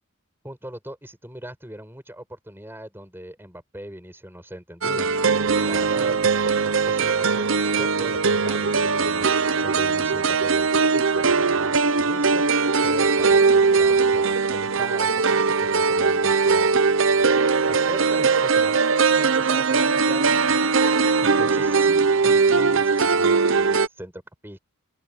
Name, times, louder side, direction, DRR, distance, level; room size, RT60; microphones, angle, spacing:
voice 1, 0.4-5.1 5.4-7.4 7.8-9.3 9.6-12.4 12.8-16.7 17.7-18.8 19.1-24.6, right 1 dB, 10° right, 6.6 m, -40 dB
sound 1, 4.8-23.9, right 4 dB, 60° right, 0.8 m, -20 dB
open air
head